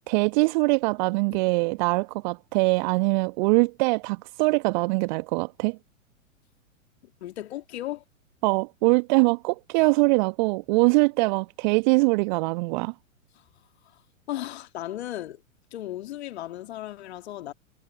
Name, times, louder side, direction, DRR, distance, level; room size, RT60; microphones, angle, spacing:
voice 1, 0.1-5.8 8.4-12.9, right 28 dB, 35° right, 1.2 m, -23 dB
voice 2, 7.2-8.0 9.8-9.9 13.3-13.5 13.8-14.0 14.3-15.4 15.7-17.5, left 13 dB, 50° left, 2.6 m, -36 dB
figure-of-eight pair, 105°, 41 cm